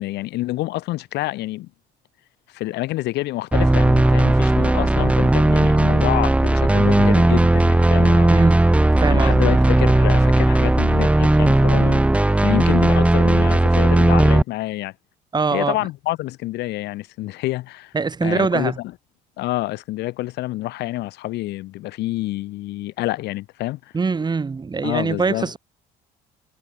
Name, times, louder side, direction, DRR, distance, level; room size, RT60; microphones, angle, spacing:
voice 1, 0.0-1.7 2.5-8.4 9.1-12.1 12.4-14.9 15.5-17.9 18.2-18.9 19.4-23.9 24.8-25.5, left 17 dB, 80° left, 6.4 m, -27 dB
sound 1, 3.5-14.4, right 1 dB, 5° right, 0.9 m, -16 dB
voice 2, 8.3-8.7 9.0-9.4 15.3-15.7 17.9-18.8 23.9-25.6, right 4 dB, 25° right, 2.6 m, -22 dB
cardioid pair, 110°, 17 cm